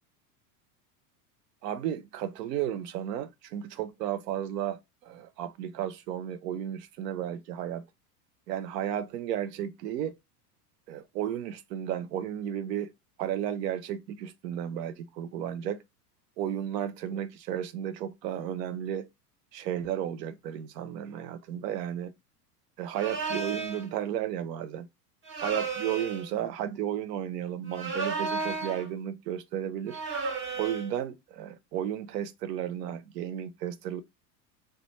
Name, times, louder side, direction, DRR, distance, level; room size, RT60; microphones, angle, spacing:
voice 1, 1.6-7.8 8.5-10.2 10.9-12.9 13.2-15.8 16.4-19.1 19.5-22.1 22.8-24.9 25.4-30.0 30.5-34.0, right 10 dB, 75° right, 0.6 m, -33 dB
sound 1, 22.9-23.9 25.3-26.3 27.7-28.9 29.9-30.9, right 4 dB, 25° right, 0.5 m, -33 dB
2.2 x 2.1 x 2.9 m
hypercardioid pair, 105°, 49 cm